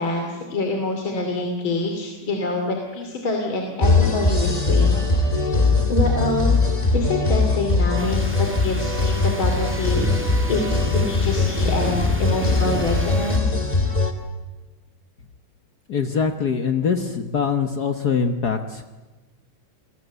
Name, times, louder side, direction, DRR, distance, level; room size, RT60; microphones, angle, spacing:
voice 1, 0.0-5.3 5.9-6.6 6.9-10.1 10.5-13.6, left 2 dB, 40° left, 3 dB, 3.3 m, -26 dB
sound 1, 3.8-14.1, left 3 dB, 15° left, 1.8 m, -21 dB
sound 2, 8.0-13.4, right 1 dB, 5° right, 1.2 m, -31 dB
voice 2, 15.9-18.8, left 6 dB, 65° left, 7 dB, 0.9 m, -23 dB
28.5 x 21.0 x 8.2 m, 1.2 s
omnidirectional pair, 3.5 m